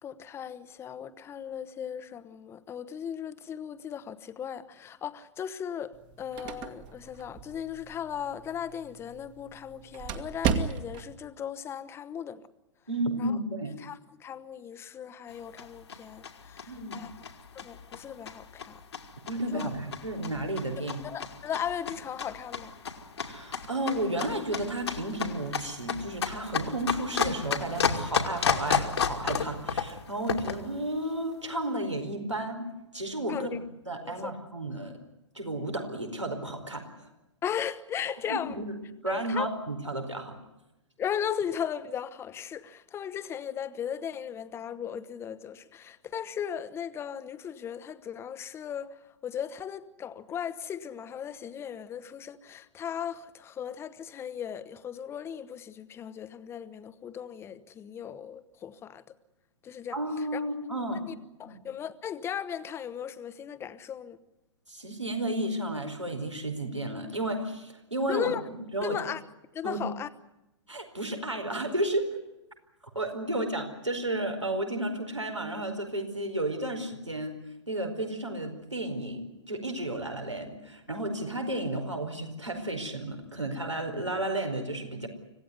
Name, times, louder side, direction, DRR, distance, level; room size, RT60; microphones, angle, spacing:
voice 1, 0.0-12.4 13.2-13.4 13.8-17.1 17.5-18.8 19.5-19.7 21.0-22.7 33.3-33.6 34.0-34.3 37.4-38.5 39.1-39.5 41.0-49.0 49.2-59.0 59.6-60.0 60.3-60.4 61.1-61.2 61.4-64.2 68.1-68.4 68.8-69.2 69.5-70.1, left 8 dB, 15° left, 1.2 m, -37 dB
sound 1, 5.9-11.2, right 7 dB, 30° right, 1.9 m, -35 dB
voice 2, 12.9-13.8 16.7-17.0 19.3-21.0 23.2-32.7 32.9-33.6 33.9-34.9 35.3-37.1 38.3-38.7 39.0-40.3 59.9-61.0 61.5-61.6 64.7-68.4 68.7-69.0 69.6-69.8 70.7-72.1 72.9-77.4 77.7-85.1, right 1 dB, 90° right, 4.8 m, -32 dB
sound 2, 15.3-30.7, left 6 dB, 65° left, 2.6 m, -33 dB
26.0 x 17.0 x 9.6 m
figure-of-eight pair, 115°, 15 cm